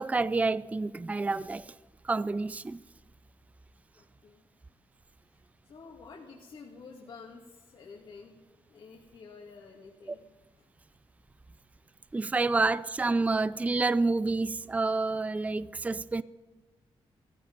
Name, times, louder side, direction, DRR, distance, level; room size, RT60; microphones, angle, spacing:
voice 1, 0.0-1.7 2.0-2.8 12.1-16.2, right 3 dB, 15° right, 0.4 m, -28 dB
voice 2, 4.0-4.4 5.3-8.4 8.7-10.2, left 4 dB, 55° left, 2.5 m, -50 dB
17.0 x 15.5 x 5.5 m
cardioid pair, 105°, 10 cm